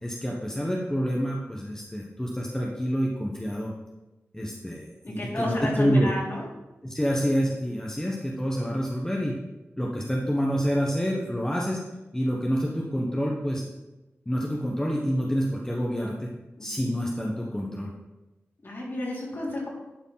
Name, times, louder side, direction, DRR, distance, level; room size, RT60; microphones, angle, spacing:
voice 1, 0.0-3.7 4.3-6.1 6.8-9.3 9.8-11.8 12.1-13.7 14.2-16.3 16.6-17.9, equal, 10° left, -2 dB, 1.4 m, -27 dB
voice 2, 5.0-6.4 16.6-16.9 18.6-19.7, left 1 dB, 45° left, -4 dB, 3.9 m, -32 dB
11.5 x 5.1 x 5.9 m, 1.0 s
wide cardioid pair, 75°, 5 cm